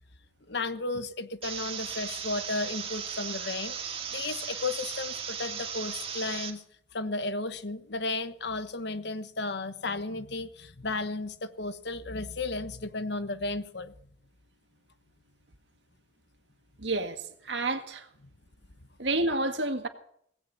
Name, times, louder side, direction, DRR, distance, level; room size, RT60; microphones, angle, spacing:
voice 1, 0.5-3.8 4.1-6.6 6.9-13.9, left 3 dB, 65° left, 1.2 m, -34 dB
sound 1, 1.4-6.5, right 7 dB, 35° right, 2.3 m, -36 dB
voice 2, 16.8-18.1 19.0-19.9, right 2 dB, 70° right, 1.9 m, -29 dB
18.0 x 16.5 x 4.2 m
head